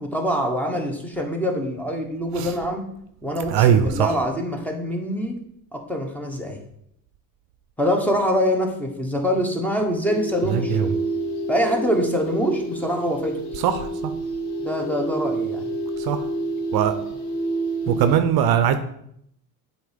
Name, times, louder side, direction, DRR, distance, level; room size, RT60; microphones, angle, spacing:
voice 1, 0.0-2.9 3.2-5.4 5.7-6.6 7.8-10.9 11.5-13.4 14.6-15.7 17.8-18.0, equal, 5° left, 2 dB, 1.1 m, -24 dB
voice 2, 3.5-4.1 10.5-10.9 13.6-13.9 16.0-16.2 16.7-16.9 17.9-18.8, right 9 dB, 60° right, 10 dB, 0.6 m, -20 dB
sound 1, 10.1-18.2, right 1 dB, 80° left, 1.2 m, -28 dB
7.6 x 2.8 x 5.1 m, 0.71 s
cardioid pair, 115°, 43 cm